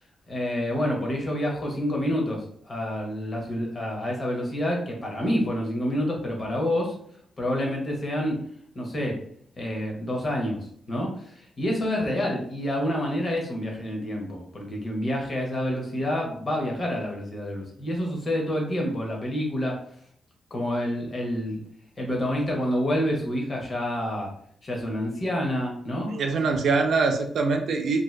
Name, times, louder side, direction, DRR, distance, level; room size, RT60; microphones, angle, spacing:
voice 1, 0.3-6.9 7.4-8.4 8.7-9.2 9.6-10.6 10.9-19.8 20.5-21.6 22.0-24.3 24.6-26.1, equal, 40° left, 0 dB, 0.7 m, -28 dB
voice 2, 26.1-28.0, right 4 dB, 75° right, 5 dB, 0.3 m, -23 dB
2.6 x 2.1 x 2.2 m, 0.64 s
cardioid pair, 105°, 0 cm